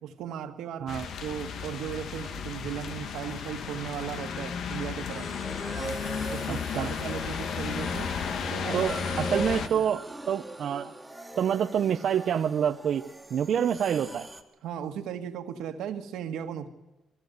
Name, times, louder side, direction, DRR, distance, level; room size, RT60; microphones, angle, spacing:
voice 1, 0.0-5.3 6.3-8.1 8.5-8.8 9.2-9.3 9.6-9.8 14.6-16.7, right 9 dB, 85° right, 7 dB, 1.7 m, -37 dB
sound 1, 0.9-9.7, left 7 dB, 70° left, 1.5 m, -34 dB
sound 2, 5.1-14.4, right 2 dB, 10° right, 2.1 m, -40 dB
voice 2, 6.5-6.9 8.7-10.9 11.4-13.0 13.3-14.3, right 8 dB, 65° right, 6 dB, 0.7 m, -27 dB
22.0 x 16.0 x 8.0 m, 1.0 s
cardioid pair, 90°, 0 cm